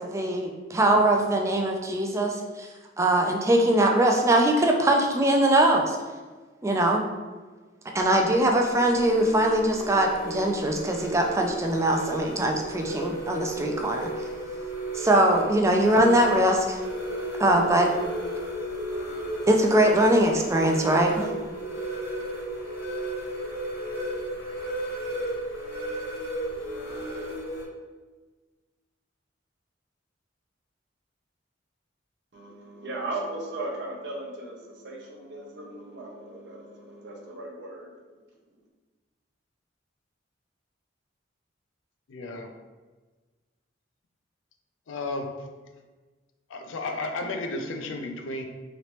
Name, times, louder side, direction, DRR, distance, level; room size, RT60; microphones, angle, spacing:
voice 1, 0.0-2.7 3.0-6.0 6.6-7.0 7.9-14.1 14.9-16.8 17.4-17.9 19.5-21.3, right 1 dB, 15° right, 2 dB, 0.3 m, -22 dB
sound 1, 7.9-27.7, right 1 dB, 65° left, 0.9 m, -34 dB
voice 2, 32.3-37.9, right 2 dB, 60° right, -1 dB, 0.6 m, -37 dB
voice 3, 42.1-42.5 44.9-45.5 46.5-48.4, left 2 dB, 85° left, 4 dB, 0.4 m, -33 dB
3.1 x 2.9 x 2.9 m, 1.3 s
head